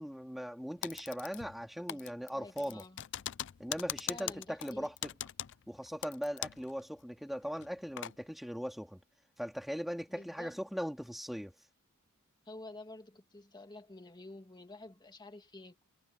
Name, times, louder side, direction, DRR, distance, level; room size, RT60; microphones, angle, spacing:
voice 1, 0.0-2.8 3.6-5.1 5.7-9.0 9.4-11.5, equal, ahead, 2.8 m, -39 dB
Typing, 0.8-1.6 1.9-6.7 7.0-7.1 7.6-8.2, left 12 dB, 55° left, 0.4 m, -41 dB
voice 2, 2.3-3.0 4.1-4.9 10.1-10.6 12.5-15.8, left 2 dB, 20° left, 2.0 m, -50 dB
head